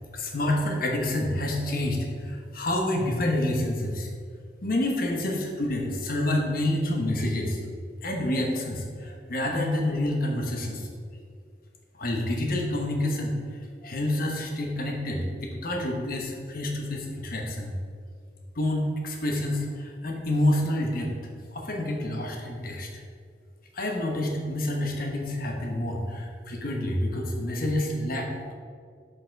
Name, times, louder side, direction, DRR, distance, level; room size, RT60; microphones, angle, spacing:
voice 1, 0.1-4.1 4.6-7.6 8.0-10.9 11.9-13.3 13.8-17.7 18.5-21.1 21.5-22.9 23.7-28.5, left 1 dB, 55° left, 1 dB, 1.1 m, -28 dB
6.7 x 5.2 x 4.6 m, 2.2 s
head